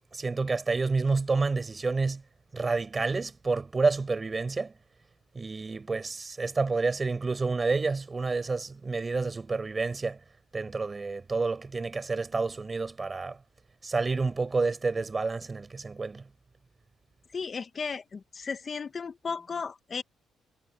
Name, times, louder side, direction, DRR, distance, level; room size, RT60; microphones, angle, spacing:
voice 1, 0.1-2.2 2.5-4.7 5.3-10.2 10.5-13.4 13.8-16.2, right 3 dB, 30° right, 4.8 m, -29 dB
voice 2, 17.3-20.0, left 5 dB, 40° left, 1.3 m, -35 dB
cardioid pair, 90°, 0 cm